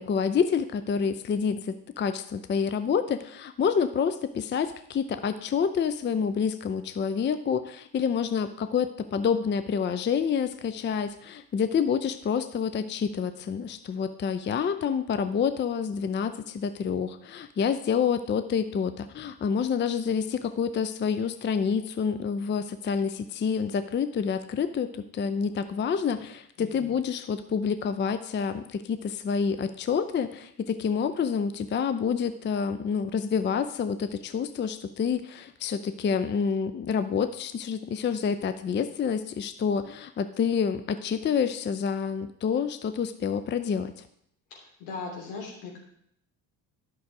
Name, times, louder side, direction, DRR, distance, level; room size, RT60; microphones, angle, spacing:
voice 1, 0.0-43.9, left 6 dB, 25° left, 11 dB, 0.5 m, -28 dB
voice 2, 44.5-45.8, left 4 dB, 70° left, -1 dB, 3.2 m, -39 dB
11.0 x 6.2 x 4.8 m, 0.72 s
hypercardioid pair, 60°, 50 cm